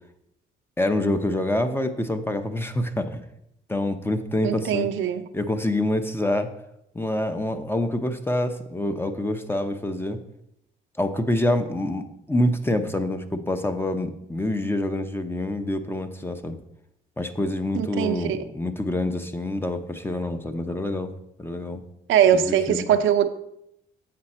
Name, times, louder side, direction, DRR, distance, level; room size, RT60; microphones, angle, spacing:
voice 1, 0.8-3.2 3.7-4.9 5.3-6.5 6.9-10.2 11.0-16.6 17.2-21.1 21.4-21.8 22.3-22.9, left 1 dB, 10° left, 8 dB, 0.7 m, -26 dB
voice 2, 4.4-5.2 17.7-18.4 22.1-23.3, right 9 dB, 80° right, 8 dB, 0.6 m, -21 dB
7.6 x 5.7 x 4.3 m, 0.79 s
cardioid pair, 90°, 20 cm